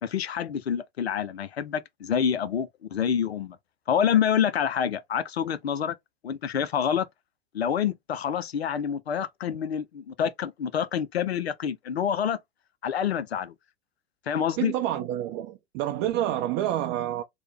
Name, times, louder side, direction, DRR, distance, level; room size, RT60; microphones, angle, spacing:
voice 1, 0.0-3.6 3.9-5.9 6.2-7.1 7.5-12.4 12.8-13.5 14.3-14.7, left 8 dB, 90° left, 0.5 m, -27 dB
voice 2, 14.6-17.2, right 12 dB, 40° right, 0.5 m, -28 dB
3.1 x 2.1 x 3.2 m
figure-of-eight pair, 90°, 30 cm